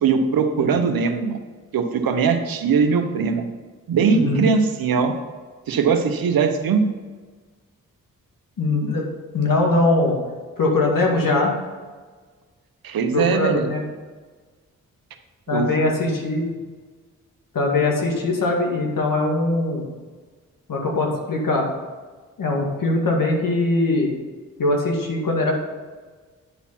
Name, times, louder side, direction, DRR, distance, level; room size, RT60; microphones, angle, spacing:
voice 1, 0.0-1.4 1.7-3.5 3.9-5.1 5.7-6.9 12.8-13.7 15.5-15.7, right 5 dB, 80° right, 6 dB, 0.9 m, -20 dB
voice 2, 4.1-4.5 8.6-9.0 9.3-10.2 10.6-11.5 13.1-13.8 15.5-16.5 17.5-19.9 20.7-21.7 22.4-24.1 24.6-25.5, left 2 dB, 70° left, 0 dB, 2.1 m, -21 dB
10.5 x 4.1 x 5.8 m, 1.4 s
supercardioid pair, 40°, 35 cm